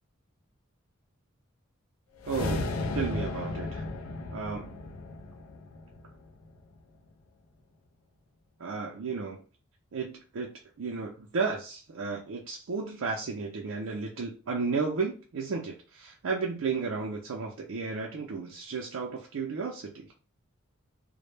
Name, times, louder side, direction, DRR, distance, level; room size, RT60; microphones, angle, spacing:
sound 1, 2.2-6.6, left 2 dB, 80° left, 0.4 m, -35 dB
voice 1, 2.3-3.8 4.3-4.8 8.6-9.4 9.9-10.5 10.8-20.1, right 4 dB, 75° right, -1 dB, 0.4 m, -33 dB
2.1 x 2.0 x 3.1 m, 0.35 s
head